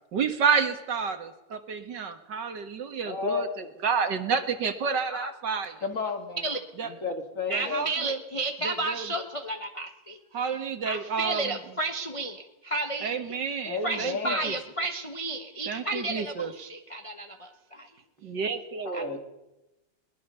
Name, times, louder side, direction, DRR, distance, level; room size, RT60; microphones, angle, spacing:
voice 1, 0.1-5.7 6.8-6.9 7.5-8.2 8.6-9.1 10.3-11.6 13.0-14.6 15.7-16.5 18.2-19.1, right 6 dB, 60° right, 9 dB, 2.1 m, -30 dB
voice 2, 3.0-3.7 5.8-6.5 7.0-7.8 13.6-14.4 18.9-19.2, left 5 dB, 40° left, 7 dB, 2.4 m, -32 dB
voice 3, 7.5-10.2 10.8-13.4 13.8-17.9 18.9-19.2, right 2 dB, 20° left, 6 dB, 1.0 m, -32 dB
22.0 x 20.0 x 6.9 m, 0.97 s
omnidirectional pair, 2.2 m